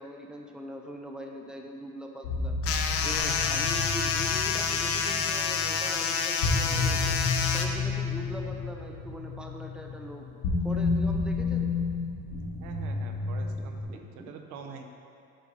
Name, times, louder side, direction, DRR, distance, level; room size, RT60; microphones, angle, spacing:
voice 1, 0.0-7.2 7.5-11.9 13.5-13.6 13.9-14.3, equal, 5° right, 2 dB, 0.6 m, -42 dB
sound 1, 2.2-13.8, left 4 dB, 90° left, 1.3 m, -31 dB
sound 2, 2.6-7.7, left 6 dB, 50° left, 0.6 m, -28 dB
voice 2, 12.6-14.9, right 5 dB, 75° right, 4 dB, 0.8 m, -45 dB
8.8 x 5.1 x 3.2 m, 2.4 s
cardioid pair, 115°, 30 cm